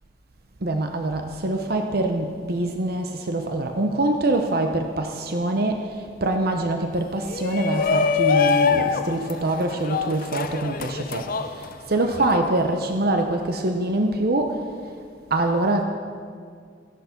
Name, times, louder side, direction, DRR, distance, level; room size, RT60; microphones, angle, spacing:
voice 1, 0.6-14.9 15.3-15.8, right 2 dB, 60° right, 4 dB, 0.8 m, -24 dB
Shout, 7.3-12.4, left 5 dB, 50° left, 0.6 m, -24 dB
15.0 x 10.5 x 5.8 m, 2.1 s
head